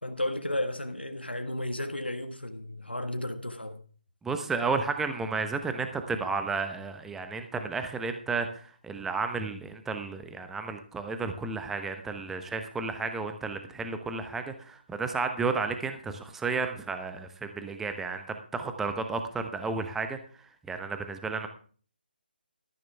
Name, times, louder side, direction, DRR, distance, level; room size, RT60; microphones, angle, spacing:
voice 1, 0.0-3.8, left 1 dB, 85° left, 1.5 m, -33 dB
voice 2, 4.2-20.2 20.7-21.5, right 4 dB, 5° right, 0.9 m, -32 dB
13.5 x 12.0 x 3.5 m
figure-of-eight pair, 145°, 5 cm